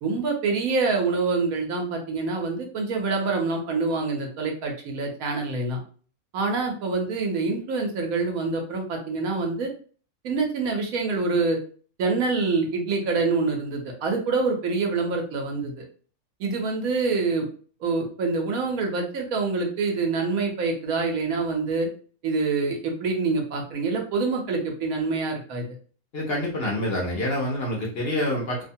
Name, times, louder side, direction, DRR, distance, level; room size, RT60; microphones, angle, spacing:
voice 1, 0.0-5.8 6.3-9.7 10.2-11.6 12.0-15.9 16.4-17.5 17.8-21.9 22.2-25.6, right 4 dB, 75° right, 2 dB, 1.1 m, -26 dB
voice 2, 26.1-28.6, left 1 dB, 55° left, -2 dB, 0.8 m, -27 dB
2.7 x 2.1 x 2.6 m, 0.42 s
omnidirectional pair, 1.5 m